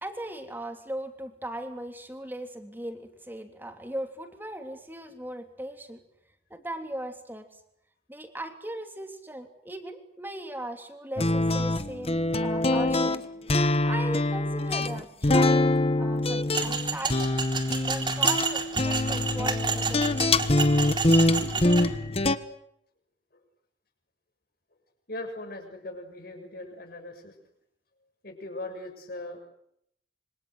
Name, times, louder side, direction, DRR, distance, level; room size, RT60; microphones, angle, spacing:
voice 1, 0.0-6.0 6.5-7.5 8.1-13.2 13.8-17.4 17.8-20.5 21.4-21.9, right 1 dB, 10° right, 6 dB, 3.1 m, -38 dB
sound 1, 11.2-22.4, left 2 dB, 35° left, 1.3 m, -24 dB
sound 2, 16.5-21.8, right 5 dB, 25° right, 4.0 m, -30 dB
voice 2, 25.1-27.4 28.2-29.4, left 2 dB, 55° left, 5 dB, 7.0 m, -39 dB
27.0 x 24.5 x 8.1 m, 0.75 s
head